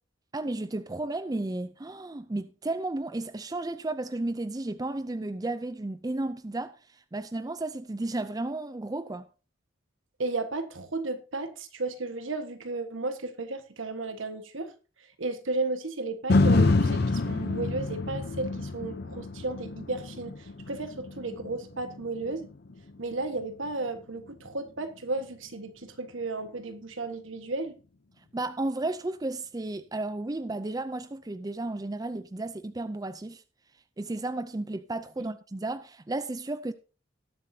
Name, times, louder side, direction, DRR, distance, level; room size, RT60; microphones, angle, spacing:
voice 1, 0.3-9.3 28.3-33.4 34.0-36.7, right 2 dB, 20° right, 0.4 m, -33 dB
voice 2, 10.2-14.7 15.0-22.5 23.0-27.8, right 3 dB, 80° right, 1.5 m, -34 dB
sound 1, 16.3-24.5 24.9-25.0, left 3 dB, 50° left, 0.7 m, -28 dB
19.0 x 7.5 x 2.8 m
head